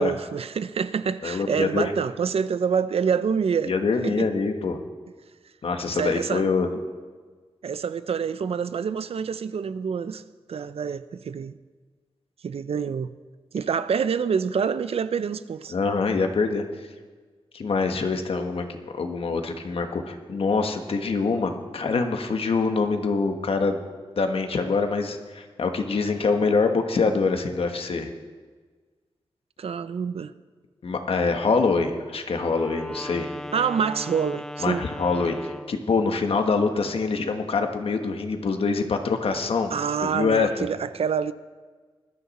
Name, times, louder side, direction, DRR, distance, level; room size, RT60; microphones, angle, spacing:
voice 1, 0.0-3.7 4.0-4.3 5.9-6.4 7.6-10.2 10.5-11.6 12.4-13.1 13.5-15.7 29.6-30.3 33.5-34.8 39.7-41.3, right 6 dB, 70° right, 0.6 m, -26 dB
voice 2, 1.2-1.9 3.7-4.8 5.6-6.7 15.7-16.6 17.5-23.8 24.2-28.1 30.8-33.3 34.6-39.7 40.0-40.5, left 4 dB, 65° left, 1.4 m, -25 dB
Wind instrument woodwind instrument, 32.3-35.8, equal, 5° left, 0.5 m, -37 dB
20.5 x 13.5 x 4.2 m
wide cardioid pair, 160°, 10 cm